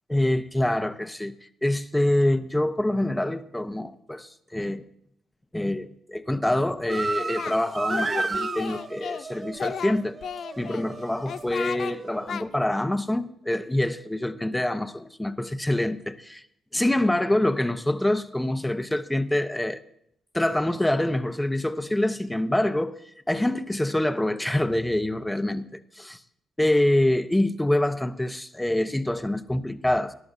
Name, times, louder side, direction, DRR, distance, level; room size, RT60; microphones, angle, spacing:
voice 1, 0.1-4.8 5.5-10.2 10.6-16.4 16.7-19.8 20.3-23.0 23.3-26.2 26.6-30.1, left 1 dB, 10° left, 0.9 m, -25 dB
Singing, 6.9-7.6 7.9-9.2 9.5-10.8 11.3-11.9 12.3-12.4, left 7 dB, 65° left, 0.5 m, -34 dB
sound 1, 6.9-12.5, right 4 dB, 40° right, 0.5 m, -33 dB
20.0 x 11.0 x 2.7 m
supercardioid pair, 70°, 0 cm